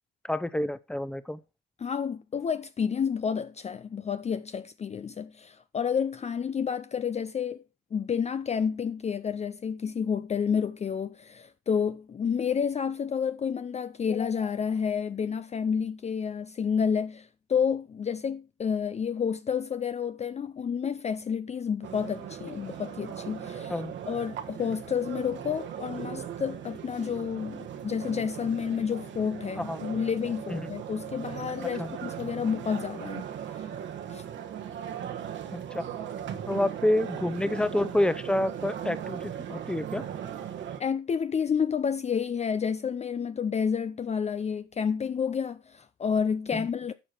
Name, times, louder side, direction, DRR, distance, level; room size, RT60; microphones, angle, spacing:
voice 1, 0.2-1.4 23.7-23.9 29.6-29.9 30.5-30.7 31.8-31.9 35.5-35.8 36.5-40.0 46.6-46.7, left 1 dB, 5° left, 0.8 m, -28 dB
voice 2, 1.8-7.6 7.9-33.3 33.5-33.7 34.1-34.2 40.8-46.9, left 7 dB, 30° left, 0.5 m, -30 dB
sound 1, 21.8-40.8, right 9 dB, 60° right, 1.3 m, -38 dB
11.5 x 6.4 x 4.4 m
hypercardioid pair, 65°, 21 cm